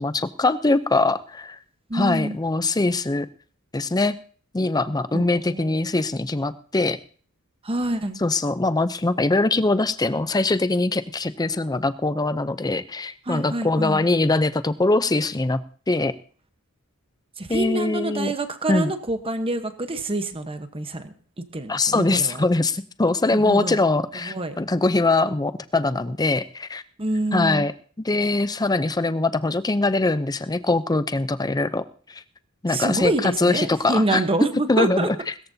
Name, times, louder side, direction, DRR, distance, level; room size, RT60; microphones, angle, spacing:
voice 1, 0.0-1.6 1.9-3.3 3.7-4.2 4.5-7.0 8.2-15.6 15.9-16.1 17.5-18.3 18.7-18.9 21.7-26.8 27.3-27.7 28.0-31.8 32.1-32.2 32.6-34.2 34.7-35.2, left 2 dB, 15° left, 13 dB, 0.6 m, -22 dB
voice 2, 1.9-2.4 5.1-5.9 7.6-8.2 13.3-14.0 17.4-21.1 21.5-22.4 23.3-23.8 24.1-24.5 27.0-27.7 32.7-35.1, right 2 dB, 25° right, 8 dB, 1.1 m, -27 dB
20.0 x 14.0 x 2.8 m, 0.42 s
head